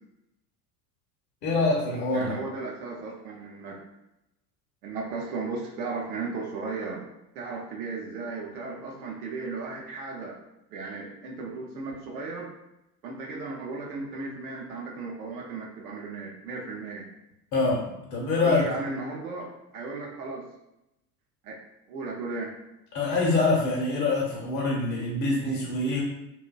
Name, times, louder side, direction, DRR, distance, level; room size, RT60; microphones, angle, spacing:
voice 1, 1.4-2.3 17.5-17.8 18.1-18.6 22.9-26.0, left 3 dB, 40° left, -3 dB, 0.7 m, -25 dB
voice 2, 2.1-3.8 4.8-7.1 7.3-10.3 10.7-12.5 13.0-17.1 18.4-19.5 19.7-20.4 21.4-21.6 21.9-22.5, right 3 dB, 65° right, -1 dB, 0.7 m, -35 dB
2.4 x 2.2 x 2.2 m, 0.88 s
figure-of-eight pair, 70°, 48 cm